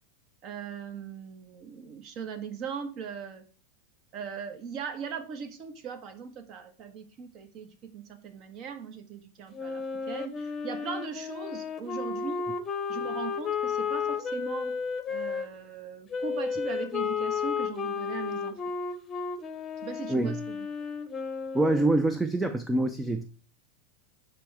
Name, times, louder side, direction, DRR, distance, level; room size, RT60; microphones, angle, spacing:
voice 1, 0.4-3.4 4.1-12.4 12.9-14.8 15.1-18.7 19.8-20.7, right 6 dB, 45° right, 1.3 m, -39 dB
Wind instrument woodwind instrument, 9.5-15.5 16.1-22.0, left 6 dB, 25° left, 0.9 m, -33 dB
voice 2, 21.5-23.2, right 2 dB, 10° right, 0.5 m, -25 dB
9.8 x 3.4 x 4.8 m
supercardioid pair, 130°, 0 cm